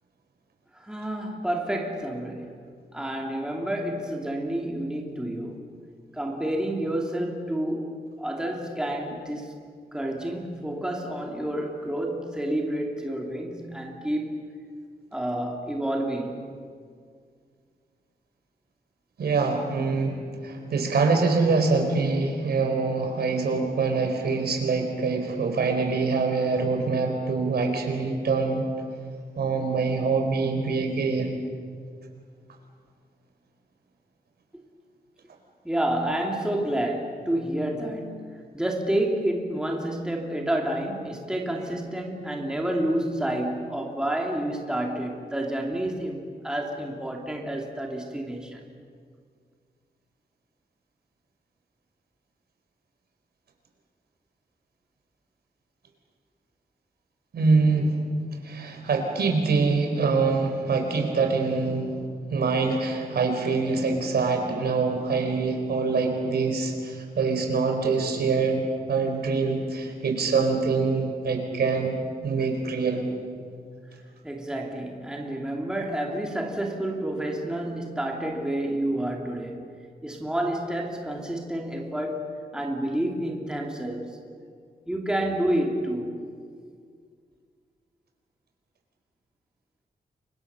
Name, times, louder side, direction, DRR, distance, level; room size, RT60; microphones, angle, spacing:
voice 1, 0.7-2.7 2.9-5.7 6.1-9.6 9.9-14.4 15.1-16.4 35.6-48.7 74.2-79.7 80.0-84.2 84.9-86.2, right 1 dB, 5° right, 0 dB, 2.5 m, -29 dB
voice 2, 19.2-28.7 29.4-31.3 57.3-58.0 58.3-62.0 62.3-73.1, right 4 dB, 85° right, 3 dB, 4.5 m, -25 dB
29.5 x 24.5 x 6.8 m, 2.1 s
wide cardioid pair, 180°, 16 cm